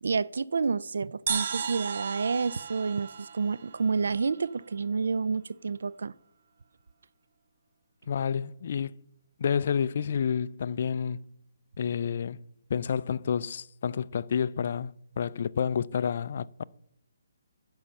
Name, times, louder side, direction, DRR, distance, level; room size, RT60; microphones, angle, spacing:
voice 1, 0.0-6.1, right 5 dB, 75° right, 0.3 m, -29 dB
sound 1, 1.3-4.8, right 7 dB, 50° right, 0.8 m, -36 dB
voice 2, 8.1-9.0 9.4-11.2 11.8-12.4 12.7-16.6, left 7 dB, 50° left, 0.4 m, -29 dB
10.5 x 5.6 x 7.1 m
hypercardioid pair, 160°, 0 cm